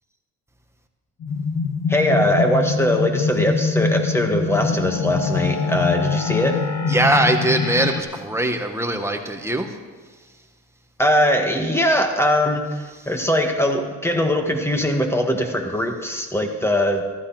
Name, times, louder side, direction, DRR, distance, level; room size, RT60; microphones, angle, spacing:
sound 1, 1.2-8.0, left 4 dB, 80° left, 1.5 m, -24 dB
voice 1, 1.9-6.6 11.0-17.0, left 1 dB, 10° left, 3 dB, 1.9 m, -21 dB
voice 2, 6.9-9.7, right 1 dB, 10° right, 4 dB, 1.5 m, -21 dB
15.0 x 12.5 x 4.4 m, 1.4 s
cardioid pair, 90°, 30 cm